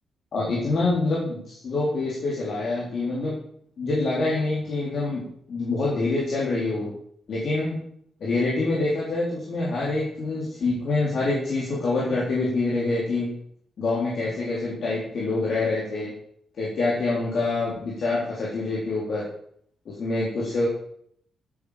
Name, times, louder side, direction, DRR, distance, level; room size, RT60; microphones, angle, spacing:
voice 1, 0.3-3.4 3.8-6.9 7.3-7.8 8.2-13.3 13.8-16.1 16.6-19.2 19.9-20.7, left 2 dB, 65° left, -5 dB, 3.8 m, -26 dB
12.0 x 8.6 x 5.1 m, 0.65 s
supercardioid pair, 55°, 0 cm